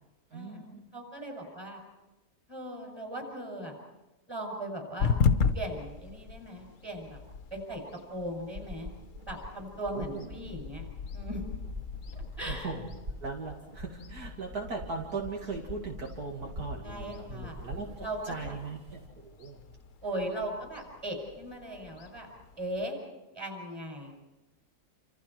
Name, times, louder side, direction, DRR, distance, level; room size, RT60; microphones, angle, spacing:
voice 1, 0.3-0.8 9.9-10.3 12.4-12.9 13.2-19.6, right 4 dB, 70° right, 0 dB, 2.7 m, -39 dB
voice 2, 0.9-1.8 2.5-3.7 4.3-5.1 5.5-7.2 7.5-7.8 8.1-8.9 9.2-10.8 11.1-11.5 12.1-12.7 16.8-17.6 18.0-18.5 20.0-22.3 22.6-23.0 23.3-24.1, right 1 dB, 15° right, 2 dB, 6.6 m, -38 dB
sound 1, 5.0-22.9, left 6 dB, 55° left, 1.2 m, -37 dB
sound 2, 8.5-19.1, left 1 dB, 30° right, 1.4 m, -44 dB
28.5 x 27.5 x 4.5 m, 1.0 s
omnidirectional pair, 1.7 m